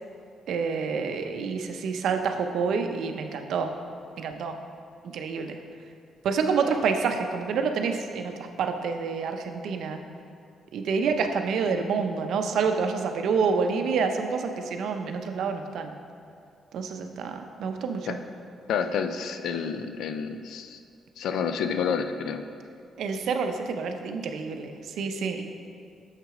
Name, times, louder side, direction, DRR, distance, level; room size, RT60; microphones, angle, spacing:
voice 1, 0.5-3.7 4.2-4.6 5.0-5.6 6.2-10.0 10.7-15.9 16.7-18.2 23.0-25.4, right 5 dB, 80° right, 6 dB, 0.6 m, -28 dB
voice 2, 18.7-20.8 21.2-22.4, left 6 dB, 85° left, 8 dB, 0.4 m, -29 dB
6.6 x 6.0 x 4.8 m, 2.4 s
cardioid pair, 105°, 0 cm